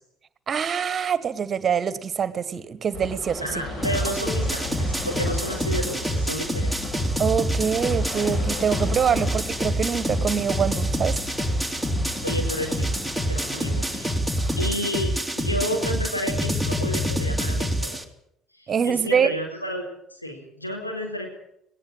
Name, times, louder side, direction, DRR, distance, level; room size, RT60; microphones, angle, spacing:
voice 1, 0.5-3.5 7.2-11.2 18.7-19.3, right 7 dB, 35° right, 15 dB, 1.5 m, -24 dB
sound 1, 2.9-14.7, left 3 dB, 40° left, 7.6 m, -36 dB
voice 2, 3.4-6.8 12.2-14.2 14.6-18.0 18.6-19.8 20.1-21.3, equal, 90° left, 1 dB, 4.5 m, -31 dB
sound 2, 3.8-18.0, equal, 5° left, 2.8 m, -26 dB
19.0 x 18.5 x 8.9 m, 0.75 s
figure-of-eight pair, 55°, 0 cm